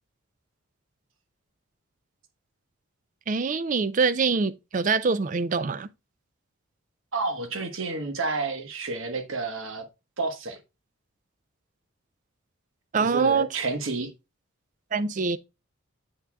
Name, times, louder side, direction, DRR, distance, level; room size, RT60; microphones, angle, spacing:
voice 1, 3.3-5.9 12.9-13.5 14.9-15.4, right 4 dB, 35° right, 0.4 m, -24 dB
voice 2, 7.1-9.8 10.2-10.6 13.0-14.1, right 3 dB, 75° right, 1.1 m, -30 dB
8.0 x 6.0 x 2.2 m
head